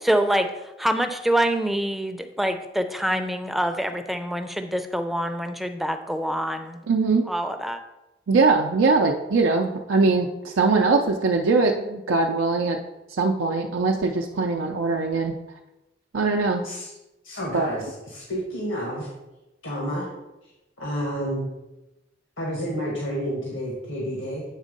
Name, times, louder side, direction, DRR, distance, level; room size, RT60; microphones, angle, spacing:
voice 1, 0.1-0.5 0.8-6.8 7.3-7.8, right 1 dB, ahead, 7 dB, 0.4 m, -25 dB
voice 2, 6.9-7.3 8.3-12.8 13.1-15.4 16.1-16.7 17.5-17.7, right 3 dB, 90° right, 1 dB, 0.5 m, -21 dB
voice 3, 17.2-19.1 19.6-20.1 20.8-21.5 22.4-24.4, equal, 90° left, -3 dB, 1.6 m, -30 dB
8.2 x 3.6 x 5.3 m, 0.97 s
head